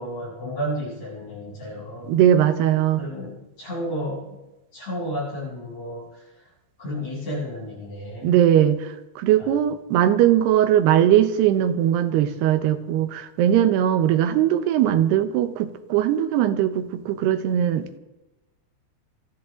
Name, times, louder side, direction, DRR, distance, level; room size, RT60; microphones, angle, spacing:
voice 1, 0.0-2.2 3.0-4.4 4.7-6.2 6.8-8.3 9.4-9.5, equal, 40° left, -8 dB, 8.1 m, -32 dB
voice 2, 2.1-3.0 8.2-8.9 9.2-18.0, right 11 dB, 85° right, 9 dB, 3.1 m, -20 dB
28.0 x 10.5 x 3.9 m, 0.99 s
omnidirectional pair, 4.7 m